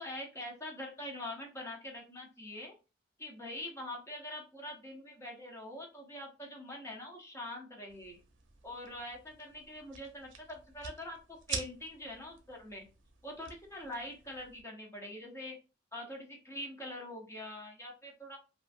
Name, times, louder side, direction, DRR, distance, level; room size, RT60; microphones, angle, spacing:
voice 1, 0.0-2.7 3.2-8.2 8.6-12.9 13.2-15.6 15.9-18.4, left 1 dB, 15° left, 0 dB, 0.7 m, -44 dB
sound 1, 7.9-14.6, right 6 dB, 70° right, 0.6 m, -47 dB
3.0 x 2.5 x 2.5 m, 0.32 s
head